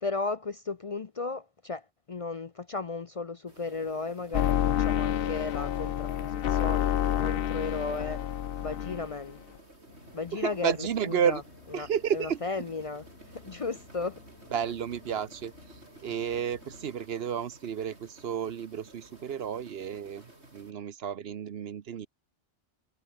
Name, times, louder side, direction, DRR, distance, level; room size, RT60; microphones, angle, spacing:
voice 1, 0.0-8.2 8.6-9.4 10.1-11.4 11.8-11.9 12.1-13.0 13.3-14.2, left 3 dB, 40° left, 0.6 m, -35 dB
sound 1, 3.5-20.7, right 1 dB, 90° right, 7.1 m, -54 dB
sound 2, 4.3-9.2, left 10 dB, 65° left, 0.8 m, -28 dB
sound 3, 9.9-16.9, left 3 dB, 80° left, 3.7 m, -54 dB
voice 2, 10.3-11.4 11.7-12.4 14.5-22.1, right 8 dB, 70° right, 1.0 m, -32 dB
omnidirectional pair, 1.1 m